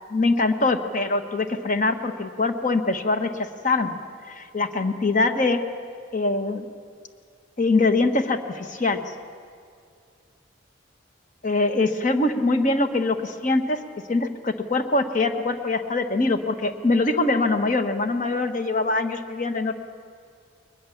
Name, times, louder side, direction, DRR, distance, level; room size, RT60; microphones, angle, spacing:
voice 1, 0.1-4.0 4.3-5.6 6.1-6.7 7.6-9.0 11.4-13.8 14.1-19.8, left 2 dB, 45° left, 8 dB, 1.2 m, -23 dB
21.5 x 20.5 x 7.2 m, 2.3 s
head